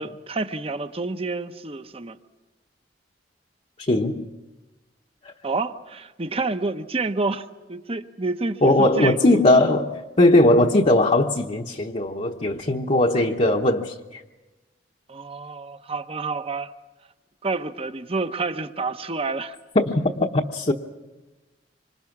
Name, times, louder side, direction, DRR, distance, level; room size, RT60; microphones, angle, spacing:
voice 1, 0.0-2.2 5.4-9.4 15.1-16.7 17.4-19.5, right 3 dB, 35° right, 0.9 m, -29 dB
voice 2, 3.8-4.2 5.2-5.3 8.6-14.0 19.7-20.7, left 1 dB, 40° left, 1.0 m, -19 dB
26.0 x 25.5 x 6.0 m
head